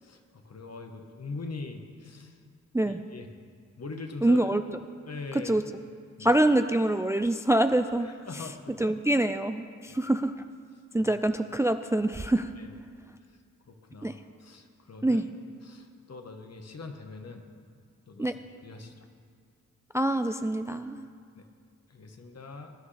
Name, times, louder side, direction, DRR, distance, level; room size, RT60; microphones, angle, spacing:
voice 1, 0.0-2.4 2.8-3.3 3.8-4.4 5.1-5.5 6.2-6.3 8.0-8.9 9.9-10.0 11.0-11.1 12.6-12.8 13.7-15.2 15.6-17.4 18.1-18.3 18.6-19.1 21.4-21.5 21.9-22.7, left 3 dB, 55° left, 4 dB, 1.3 m, -42 dB
voice 2, 4.2-4.6 5.3-5.6 6.2-8.4 8.8-10.3 10.9-12.5 14.0-14.2 15.0-15.3 18.2-18.3 19.9-21.1, right 1 dB, 10° right, 9 dB, 0.4 m, -25 dB
20.5 x 9.5 x 3.4 m, 2.2 s
cardioid pair, 55°, 31 cm